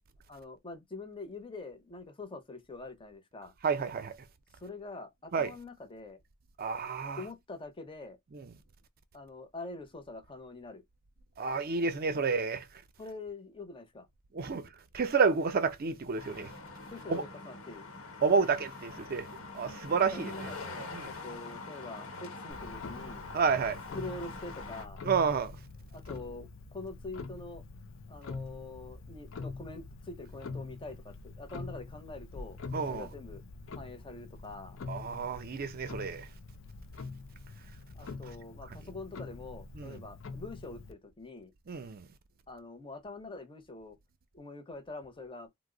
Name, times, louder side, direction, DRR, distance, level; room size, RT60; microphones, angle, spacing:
voice 1, 0.3-3.5 4.6-6.2 7.2-8.2 9.1-10.8 12.1-12.3 13.0-14.1 16.9-17.9 20.0-23.3 23.9-25.0 25.9-27.6 28.1-33.4 33.7-34.8 37.9-41.5 42.5-44.0 44.3-45.5, left 3 dB, 25° left, 0.6 m, -45 dB
voice 2, 3.6-4.2 5.3-5.5 6.6-7.2 8.3-8.5 11.4-12.6 14.3-14.7 14.9-16.5 17.1-17.2 18.2-19.3 19.5-20.5 20.9-21.1 23.3-23.8 25.0-25.6 32.7-33.1 34.9-36.3 38.7-38.8 39.8-40.0 41.7-42.1, right 5 dB, 45° right, 0.5 m, -30 dB
sound 1, 16.2-24.8, left 3 dB, 80° left, 0.9 m, -44 dB
Clock, 22.5-40.9, left 3 dB, 65° left, 0.5 m, -45 dB
2.7 x 2.0 x 3.7 m
head